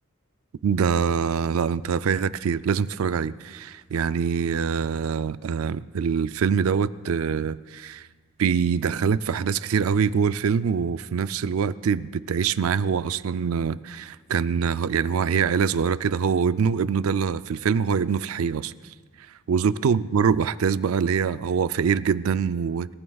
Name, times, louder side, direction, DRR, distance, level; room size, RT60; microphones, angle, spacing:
voice 1, 0.6-8.1 8.4-18.7 19.5-22.9, right 6 dB, 90° right, 15 dB, 0.4 m, -24 dB
25.5 x 14.0 x 2.4 m, 1.4 s
head